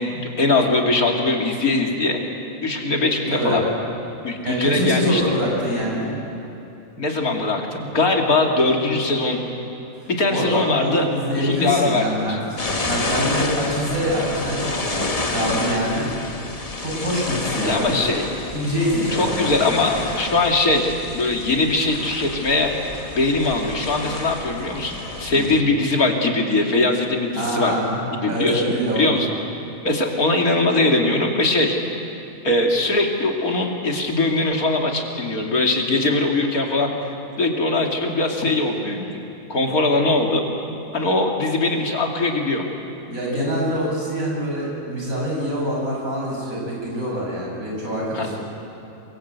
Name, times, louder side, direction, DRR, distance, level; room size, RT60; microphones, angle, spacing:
voice 1, 0.0-2.2 2.6-3.6 4.2-5.2 7.0-9.4 10.1-11.1 11.4-12.4 17.6-18.2 19.2-22.7 23.1-27.7 28.1-29.3 29.8-31.8 32.4-39.1 39.5-40.4 40.9-42.6 48.1-48.3, left 2 dB, 90° left, 1 dB, 3.2 m, -21 dB
voice 2, 3.3-3.7 4.4-6.2 9.9-16.1 16.8-18.0 18.5-19.8 25.3-25.5 27.4-28.0 28.3-29.2 43.1-48.4, equal, 75° right, -3 dB, 7.7 m, -25 dB
sound 1, 12.6-25.6, left 2 dB, 25° left, 1.3 m, -29 dB
28.5 x 23.0 x 8.3 m, 3.0 s
omnidirectional pair, 1.5 m